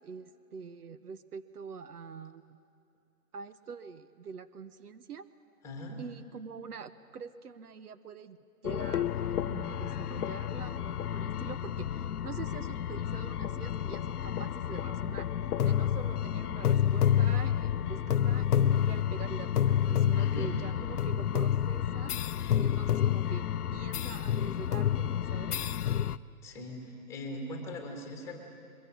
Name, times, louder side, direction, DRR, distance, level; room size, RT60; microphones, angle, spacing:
voice 1, 0.0-2.6 3.3-5.3 6.0-8.4 8.6-15.3 15.6-22.1 22.6-25.6, right 6 dB, 75° right, 13 dB, 1.0 m, -45 dB
voice 2, 5.6-6.0 16.5-16.6 20.2-20.6 26.4-28.4, left 1 dB, 5° left, 3 dB, 1.5 m, -40 dB
sound 1, 8.6-26.2, left 10 dB, 75° left, 0.7 m, -29 dB
22.0 x 22.0 x 7.5 m, 2.8 s
hypercardioid pair, 160°, 46 cm